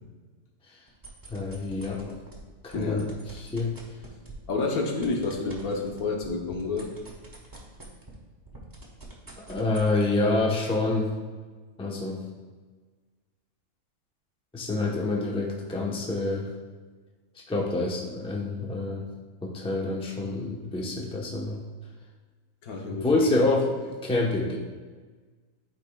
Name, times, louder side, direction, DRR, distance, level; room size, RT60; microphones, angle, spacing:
sound 1, 0.9-2.4 2.7-8.2 8.5-9.9, right 2 dB, 15° right, 1.2 m, -46 dB
voice 1, 1.3-2.1 2.6-3.7 9.4-11.1 11.8-12.2 14.5-16.5 17.5-19.1 19.4-21.6 22.9-24.6, left 2 dB, 5° left, -1 dB, 0.7 m, -27 dB
voice 2, 2.7-3.1 4.5-6.9 22.6-23.1, left 3 dB, 75° left, 1 dB, 1.5 m, -29 dB
12.0 x 5.0 x 2.3 m, 1.4 s
omnidirectional pair, 1.6 m